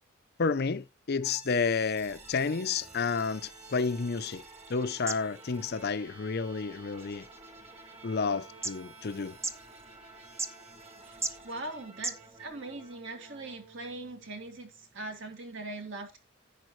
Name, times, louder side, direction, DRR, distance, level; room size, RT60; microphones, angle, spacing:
voice 1, 0.4-4.4 4.7-7.3 8.0-9.4, left 5 dB, 50° left, 0.6 m, -30 dB
sound 1, 1.2-15.1, right 3 dB, 30° right, 2.3 m, -51 dB
sound 2, 3.4-12.6, right 3 dB, 15° right, 0.7 m, -43 dB
voice 2, 11.4-16.2, right 2 dB, 60° right, 2.4 m, -41 dB
10.5 x 8.6 x 3.1 m
head